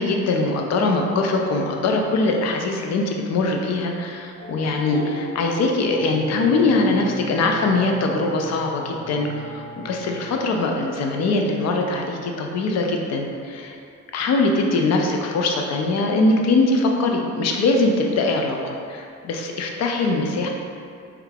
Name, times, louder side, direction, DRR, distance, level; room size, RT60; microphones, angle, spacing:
voice 1, 0.0-13.8 14.1-20.5, left 3 dB, 60° left, 2 dB, 0.5 m, -22 dB
sound 1, 0.9-10.4, equal, 15° left, 0.6 m, -38 dB
3.3 x 2.4 x 3.3 m, 2.3 s
cardioid pair, 90°, 30 cm